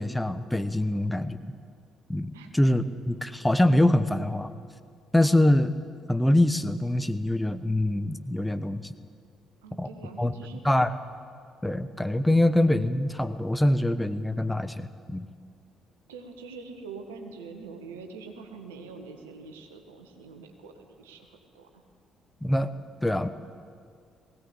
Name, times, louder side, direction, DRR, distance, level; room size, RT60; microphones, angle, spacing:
voice 1, 0.0-1.4 2.1-4.5 5.1-5.7 6.1-8.9 9.8-9.9 10.2-10.3 10.6-10.9 11.6-15.3 22.4-22.7 23.0-23.3, left 1 dB, 10° left, 11 dB, 1.1 m, -24 dB
voice 2, 9.6-10.6 16.1-21.8, right 4 dB, 80° right, 5 dB, 1.8 m, -44 dB
20.5 x 17.0 x 8.3 m, 2.2 s
figure-of-eight pair, 45°, 0 cm